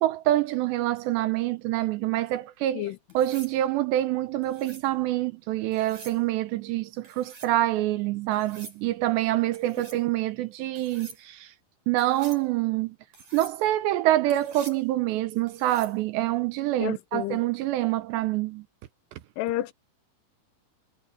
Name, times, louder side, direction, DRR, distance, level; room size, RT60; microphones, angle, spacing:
voice 1, 0.0-2.9 3.1-11.5 11.9-13.0 13.3-18.6, right 15 dB, 80° right, 2.8 m, -26 dB
sound 1, 3.1-3.6 4.4-4.9 5.7-6.2 7.0-7.5 8.3-8.8 9.5-10.0 10.7-11.2 12.0-12.4 13.1-13.6 14.3-14.8 15.5-16.0 17.9-18.2, right 4 dB, 40° right, 7.6 m, -47 dB
voice 2, 16.8-17.4 19.4-19.7, left 14 dB, 85° left, 3.6 m, -30 dB
omnidirectional pair, 5.4 m